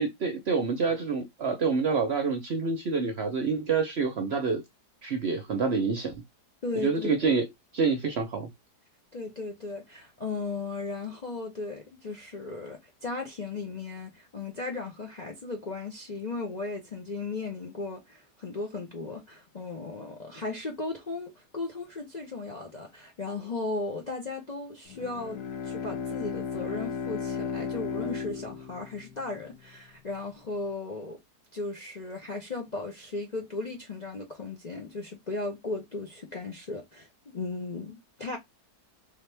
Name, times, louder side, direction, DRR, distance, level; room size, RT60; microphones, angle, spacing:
voice 1, 0.0-4.6 5.0-6.2 6.8-7.5 7.7-8.5, right 4 dB, 55° right, 0.8 m, -27 dB
voice 2, 6.6-7.1 9.1-31.2 31.5-38.4, left 3 dB, 40° left, 0.6 m, -36 dB
Bowed string instrument, 24.9-29.7, left 6 dB, 75° left, 1.2 m, -35 dB
3.5 x 2.9 x 3.3 m
omnidirectional pair, 1.7 m